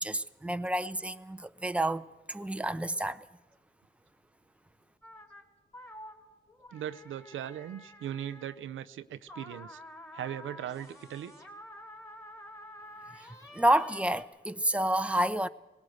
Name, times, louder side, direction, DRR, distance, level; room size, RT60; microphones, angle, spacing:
voice 1, 0.0-3.2 13.2-13.3 13.5-15.5, right 1 dB, 5° right, 0.8 m, -29 dB
sound 1, 5.0-5.4 5.7-8.5 9.3-14.2, left 1 dB, 15° left, 4.1 m, -49 dB
voice 2, 6.7-9.8 10.1-11.3, right 10 dB, 85° right, 0.6 m, -39 dB
19.0 x 17.5 x 7.8 m
cardioid pair, 55°, 20 cm